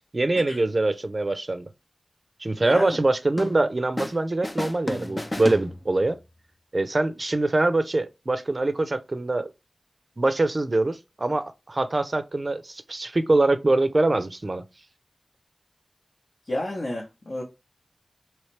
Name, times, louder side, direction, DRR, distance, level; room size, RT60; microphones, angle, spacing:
voice 1, 0.1-1.7 2.4-6.2 6.7-9.5 10.2-14.6, right 2 dB, 45° right, 0.5 m, -24 dB
voice 2, 2.6-3.0 16.5-17.4, left 1 dB, 55° left, 0.9 m, -30 dB
sound 1, 3.4-4.2 4.4-6.2, left 1 dB, 30° left, 0.4 m, -32 dB
3.2 x 3.1 x 3.1 m
wide cardioid pair, 65°, 0 cm